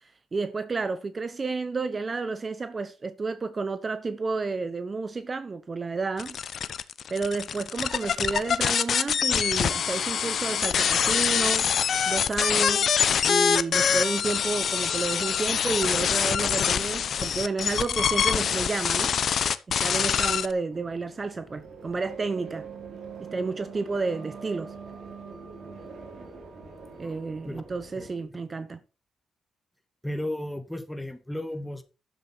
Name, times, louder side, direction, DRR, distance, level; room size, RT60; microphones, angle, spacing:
voice 1, 0.0-6.4 7.1-11.7 12.1-12.9 13.3-19.2 19.8-22.7 23.2-24.7 27.0-28.8, right 4 dB, 35° right, 0.9 m, -31 dB
sound 1, 6.2-20.5, left 7 dB, 60° left, 0.8 m, -25 dB
sound 2, 20.7-28.1, right 5 dB, 60° right, 3.9 m, -43 dB
voice 2, 30.0-31.8, left 1 dB, 5° left, 2.2 m, -34 dB
11.0 x 7.3 x 4.5 m
supercardioid pair, 65°, 0 cm